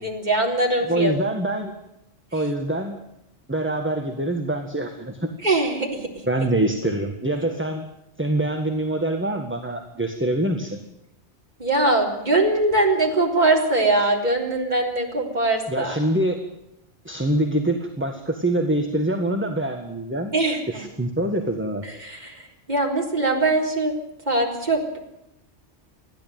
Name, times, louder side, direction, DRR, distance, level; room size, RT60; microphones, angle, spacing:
voice 1, 0.0-1.1 5.4-6.1 11.6-15.9 20.3-20.8 22.0-22.4 22.7-23.9 24.3-25.0, right 2 dB, 40° right, 0 dB, 4.1 m, -22 dB
voice 2, 0.8-1.8 2.3-3.0 3.5-5.3 6.3-7.9 8.2-10.8 15.7-16.4 17.0-20.3 20.7-21.8, right 1 dB, 10° right, 4 dB, 1.7 m, -25 dB
30.0 x 12.0 x 9.2 m, 0.85 s
omnidirectional pair, 1.2 m